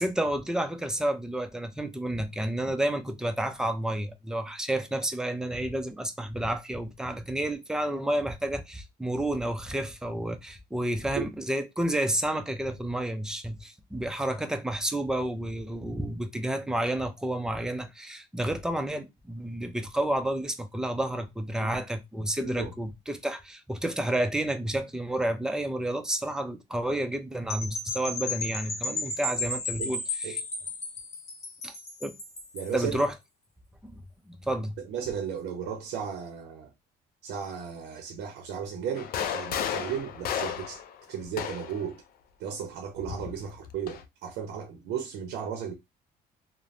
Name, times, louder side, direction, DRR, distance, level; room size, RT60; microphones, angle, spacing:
voice 1, 0.0-30.4 31.6-31.7 32.0-32.1 32.7-33.1 33.8-34.8, right 1 dB, 5° right, 0.4 m, -30 dB
voice 2, 22.4-22.7 28.9-29.0 29.8-29.9 30.2-30.4 32.5-33.1 34.8-36.7 37.2-40.8 41.1-42.0 42.4-45.7, right 7 dB, 85° right, 0.6 m, -35 dB
sound 1, 27.5-32.8, left 2 dB, 40° left, 1.1 m, -34 dB
sound 2, 39.0-41.9 43.0-44.0, left 8 dB, 60° left, 0.4 m, -33 dB
3.1 x 2.0 x 2.6 m
cardioid pair, 110°, 17 cm